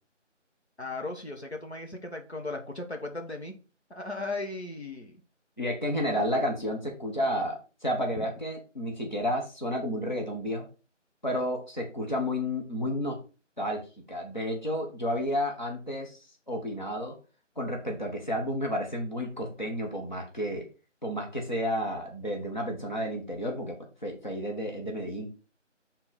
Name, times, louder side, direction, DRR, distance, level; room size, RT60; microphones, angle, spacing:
voice 1, 0.8-3.5 3.9-5.2 6.1-6.2 8.2-8.3, left 2 dB, 60° left, 3 dB, 1.1 m, -37 dB
voice 2, 5.6-10.7 11.2-13.2 13.6-16.2 16.5-17.2 17.6-20.7 21.0-25.3, equal, 35° left, 1 dB, 1.1 m, -31 dB
6.5 x 3.8 x 4.1 m, 0.34 s
figure-of-eight pair, 180°, 37 cm